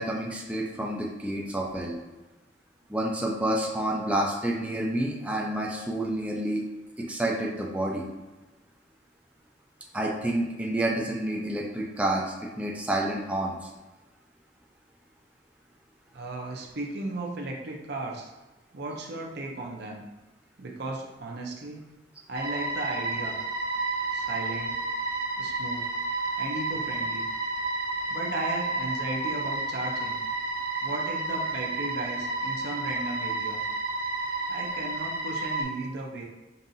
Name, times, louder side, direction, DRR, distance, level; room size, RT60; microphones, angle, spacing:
voice 1, 0.0-2.0 2.9-6.6 7.1-8.0 9.9-13.6, right 1 dB, 5° right, -2 dB, 0.4 m, -29 dB
voice 2, 16.1-18.3 18.7-20.0 20.6-21.8 22.3-23.4 24.1-24.8 25.4-25.9 26.4-27.3 28.1-30.2 30.8-33.6 34.5-36.2, right 2 dB, 60° right, 0 dB, 0.7 m, -35 dB
sound 1, 22.3-35.6, right 2 dB, 85° right, 1.3 m, -31 dB
5.3 x 2.5 x 2.7 m, 1.1 s
head